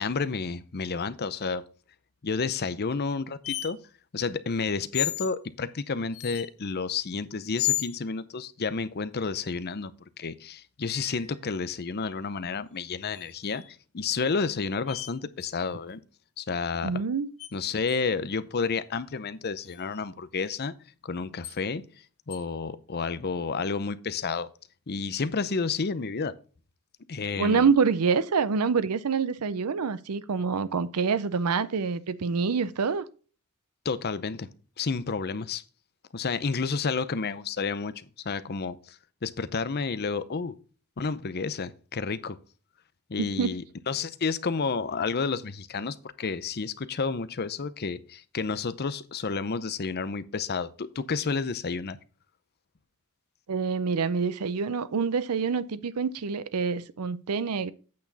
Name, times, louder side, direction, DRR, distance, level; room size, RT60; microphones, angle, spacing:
voice 1, 0.0-1.6 2.2-3.8 4.1-9.9 10.2-13.6 13.9-16.0 16.4-16.9 17.5-20.7 21.0-21.8 22.3-24.5 24.9-26.3 27.1-27.7 33.8-34.5 34.8-35.6 36.1-40.5 41.0-42.4 43.1-52.0, left 4 dB, 45° left, 0.6 m, -30 dB
sound 1, 3.4-3.7 4.9-5.3 6.1-6.5 7.6-8.0 10.9-11.4 13.0-13.7 14.9-15.1 15.4-15.5 17.4-17.5 17.9-18.0 19.6-19.8 21.4-21.6 22.3-22.4, left 14 dB, 65° left, 1.5 m, -32 dB
voice 2, 16.8-17.3 27.4-33.1 43.2-43.5 53.5-57.7, right 5 dB, 90° right, 0.6 m, -26 dB
8.6 x 6.3 x 4.0 m
head